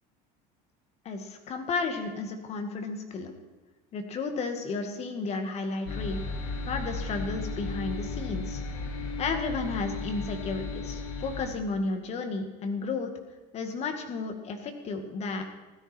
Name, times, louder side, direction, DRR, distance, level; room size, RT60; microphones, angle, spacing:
voice 1, 1.1-3.3 3.9-6.2 6.7-8.6 9.2-13.1 13.5-15.4, left 4 dB, 35° left, 5 dB, 2.0 m, -33 dB
sound 1, 5.9-11.5, left 3 dB, 80° left, 6.0 m, -35 dB
16.0 x 13.0 x 4.4 m, 1.3 s
cardioid pair, 150°, 19 cm